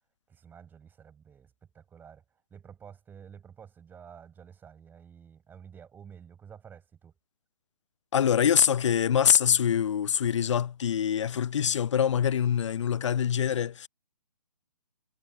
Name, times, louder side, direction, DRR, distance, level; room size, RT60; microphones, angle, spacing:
voice 1, 0.3-2.2 2.5-7.2, right 7 dB, 10° right, 8.0 m, -50 dB
voice 2, 8.1-13.9, left 8 dB, 50° left, 0.5 m, -24 dB
figure-of-eight pair, 145°, 20 cm